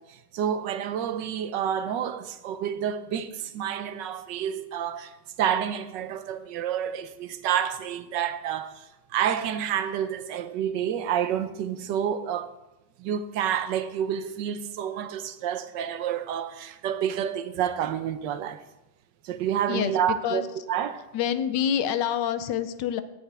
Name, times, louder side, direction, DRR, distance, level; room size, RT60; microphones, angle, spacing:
voice 1, 0.3-5.1 5.4-8.8 9.1-12.5 13.0-18.6 19.2-21.0, right 9 dB, 90° right, 1.4 m, -29 dB
voice 2, 19.7-20.5 21.1-23.0, left 9 dB, 85° left, 1.4 m, -27 dB
17.5 x 7.2 x 3.4 m
omnidirectional pair, 1.9 m